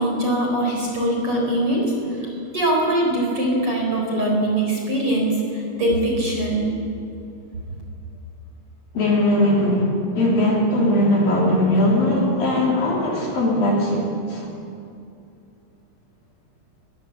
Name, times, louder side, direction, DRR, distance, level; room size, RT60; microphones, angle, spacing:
voice 1, 0.0-2.3 2.5-6.7, right 1 dB, 30° right, -1 dB, 4.6 m, -22 dB
voice 2, 8.9-14.5, left 1 dB, 50° left, -3 dB, 4.4 m, -19 dB
23.0 x 21.5 x 7.7 m, 2.5 s
omnidirectional pair, 6.0 m